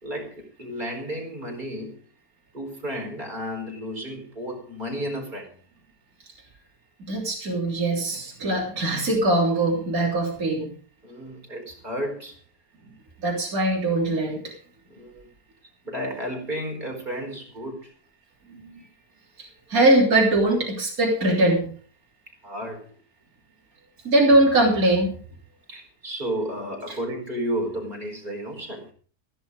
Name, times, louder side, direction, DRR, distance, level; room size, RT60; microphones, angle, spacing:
voice 1, 0.0-2.0 2.5-5.5 11.0-12.3 14.9-15.3 15.8-17.9 22.4-22.8 25.7-28.9, equal, 30° right, 1 dB, 4.7 m, -32 dB
voice 2, 7.1-10.7 13.2-14.5 18.5-18.8 19.4-21.7 24.0-25.1 26.9-27.0, right 1 dB, 60° right, -2 dB, 4.0 m, -21 dB
15.5 x 11.0 x 4.9 m, 0.43 s
omnidirectional pair, 1.8 m